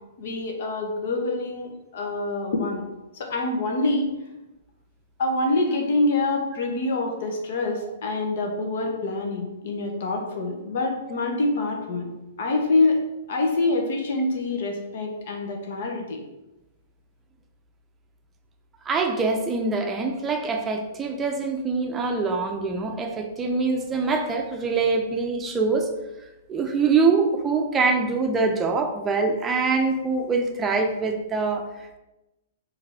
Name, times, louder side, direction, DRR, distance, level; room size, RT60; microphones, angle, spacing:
voice 1, 0.2-2.9 3.1-4.1 5.2-12.1 12.4-13.0 13.3-16.2, left 2 dB, 60° left, 2 dB, 0.9 m, -25 dB
voice 2, 18.9-25.9 26.5-31.7, right 4 dB, 20° right, 3 dB, 0.6 m, -24 dB
4.7 x 2.7 x 3.4 m, 1.0 s
figure-of-eight pair, 110°, 0 cm